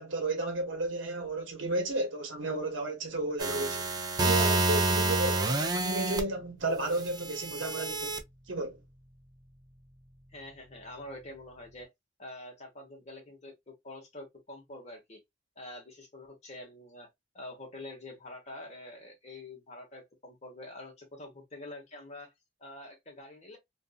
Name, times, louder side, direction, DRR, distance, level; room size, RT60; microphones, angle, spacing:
voice 1, 0.0-3.9 4.2-8.2 8.5-8.8, right 2 dB, 75° right, 0.8 m, -33 dB
sound 1, 3.4-6.2 7.1-8.2, right 2 dB, 20° right, 0.4 m, -28 dB
voice 2, 10.3-11.9 12.2-15.2 15.6-17.1 17.3-22.3 22.6-23.6, left 1 dB, 35° left, 1.1 m, -46 dB
2.5 x 2.5 x 2.4 m
head